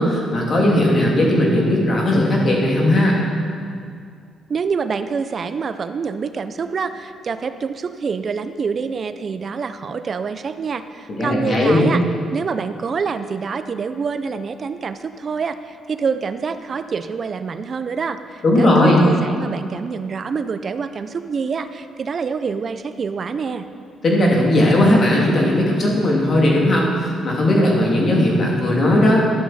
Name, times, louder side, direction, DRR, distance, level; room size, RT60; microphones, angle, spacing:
voice 1, 0.0-3.2 11.2-11.9 18.4-19.0 24.0-29.2, left 1 dB, 45° left, -2 dB, 2.4 m, -17 dB
voice 2, 4.5-12.0 12.3-23.7, right 5 dB, 45° right, 11 dB, 0.4 m, -26 dB
11.5 x 7.6 x 4.1 m, 2.3 s
cardioid pair, 90°, 0 cm